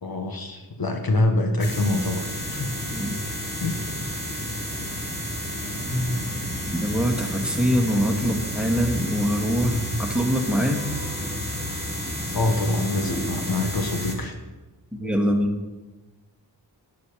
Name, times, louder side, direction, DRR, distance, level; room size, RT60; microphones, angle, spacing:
voice 1, 0.0-2.7 3.6-3.7 12.3-14.4, left 2 dB, 50° left, 5 dB, 1.5 m, -25 dB
sound 1, 1.6-14.1, left 1 dB, 20° left, 3.0 m, -31 dB
voice 2, 5.9-6.3 6.7-10.8 14.9-15.5, equal, ahead, 2 dB, 2.5 m, -24 dB
11.0 x 9.5 x 5.2 m, 1.2 s
supercardioid pair, 40°, 45 cm